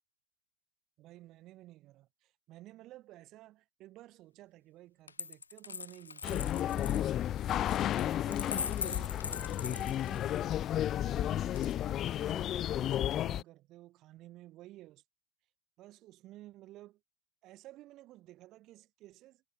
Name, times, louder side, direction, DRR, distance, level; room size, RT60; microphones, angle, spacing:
voice 1, 1.0-7.1 7.5-8.5 8.8-10.7 10.9-15.0 15.8-17.0 17.4-19.4, right 16 dB, 35° right, 7.9 m, -54 dB
Coin (dropping), 5.1-10.5 11.6-12.3, left 5 dB, 75° left, 0.6 m, -41 dB
sound 1, 6.2-13.4, left 11 dB, 30° left, 1.6 m, -32 dB
figure-of-eight pair, 90°, 0 cm